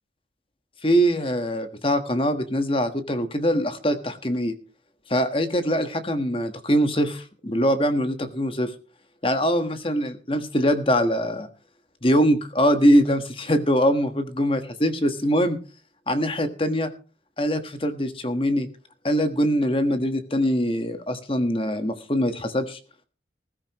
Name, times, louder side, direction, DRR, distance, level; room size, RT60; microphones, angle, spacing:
voice 1, 0.8-4.5 5.1-8.7 9.2-11.5 12.0-15.6 16.1-16.9 17.4-18.7 19.0-22.8, equal, 30° left, 9 dB, 1.4 m, -23 dB
20.0 x 13.0 x 3.1 m, 0.37 s
head